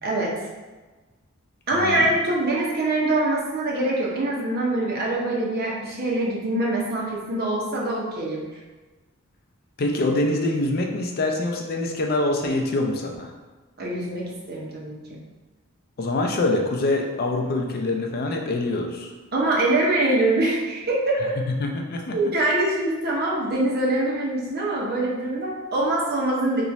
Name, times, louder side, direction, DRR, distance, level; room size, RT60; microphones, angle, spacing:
voice 1, 0.0-0.3 1.7-8.5 13.8-15.0 19.3-21.4 22.1-26.6, right 2 dB, 45° right, -4 dB, 0.8 m, -24 dB
voice 2, 1.7-2.1 9.8-13.3 16.0-19.1 21.5-22.2, left 2 dB, 45° left, 2 dB, 0.4 m, -25 dB
3.0 x 2.4 x 4.0 m, 1.3 s
head